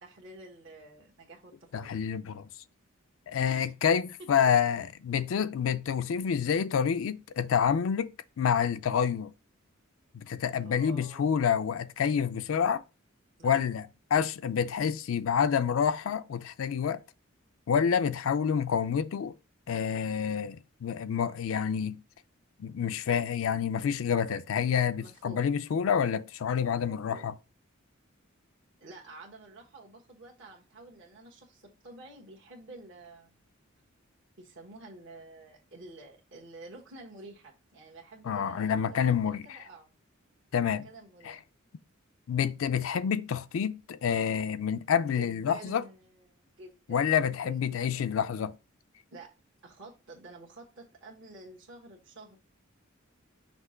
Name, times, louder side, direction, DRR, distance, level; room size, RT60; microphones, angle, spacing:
voice 1, 0.0-1.9 3.5-3.7 10.6-11.5 13.4-13.5 24.9-25.5 26.6-27.3 28.8-33.4 34.4-39.9 40.6-41.4 45.1-48.1 49.1-49.3 49.6-52.4, right 2 dB, 65° right, 1.4 m, -50 dB
voice 2, 1.7-2.5 3.3-9.3 10.2-12.8 13.4-17.0 17.7-19.3 19.7-22.0 22.6-27.3 38.3-39.4 40.5-40.9 41.3-41.4 42.3-45.8 46.9-48.5, left 7 dB, 70° left, 0.4 m, -28 dB
5.9 x 2.8 x 5.6 m
head